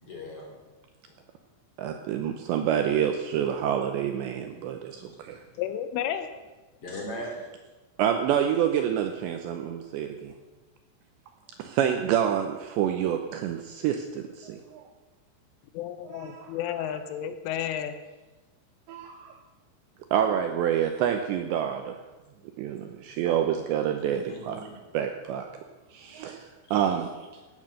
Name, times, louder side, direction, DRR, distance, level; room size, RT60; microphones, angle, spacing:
voice 1, 0.0-0.5 4.9-5.4 6.8-7.4 24.3-24.6 27.4-27.5, left 1 dB, 40° left, 0 dB, 2.5 m, -39 dB
voice 2, 1.8-5.4 8.0-10.3 11.6-14.9 16.1-16.5 18.9-19.4 20.1-22.0 22.6-24.7 24.9-25.5 25.9-27.4, right 9 dB, 85° right, 6 dB, 2.6 m, -28 dB
voice 3, 5.6-6.3 15.7-18.0, left 10 dB, 80° left, 9 dB, 3.2 m, -32 dB
16.5 x 9.7 x 6.5 m, 1.2 s
omnidirectional pair, 5.9 m